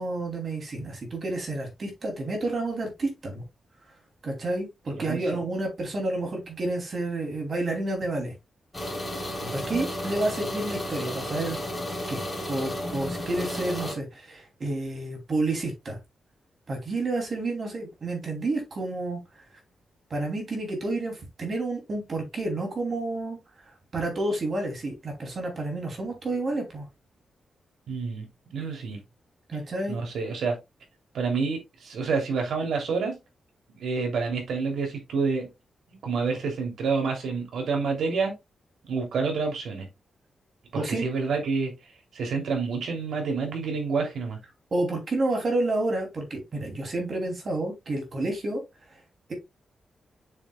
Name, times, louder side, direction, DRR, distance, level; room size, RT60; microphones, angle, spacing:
voice 1, 0.0-3.4 4.2-8.3 9.4-11.6 12.1-12.2 12.5-16.0 16.7-19.2 20.1-23.4 23.9-26.8 29.5-30.0 40.7-41.1 44.7-48.6, right 2 dB, 35° right, 2.9 m, -30 dB
sound 1, 8.7-13.9, left 1 dB, 10° left, 3.5 m, -33 dB
voice 2, 27.9-29.0 29.9-30.6 31.1-33.2 33.8-35.5 35.9-38.3 38.8-39.9 40.7-44.4, right 4 dB, 75° right, 2.9 m, -28 dB
7.0 x 6.8 x 2.3 m
wide cardioid pair, 170°, 0 cm